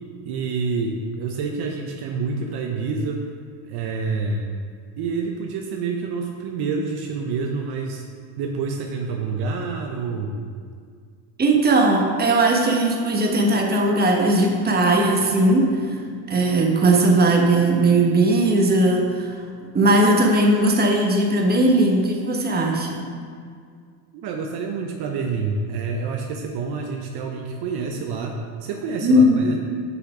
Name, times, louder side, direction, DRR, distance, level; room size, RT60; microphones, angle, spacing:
voice 1, 0.2-3.3 3.7-4.5 5.0-8.0 8.4-10.4 24.1-29.6, right 4 dB, 55° right, 2 dB, 0.8 m, -27 dB
voice 2, 11.4-15.7 16.3-19.4 19.7-23.1 29.0-29.5, right 1 dB, 20° right, 1 dB, 1.2 m, -18 dB
6.4 x 5.7 x 4.9 m, 2.1 s
supercardioid pair, 100°, 47 cm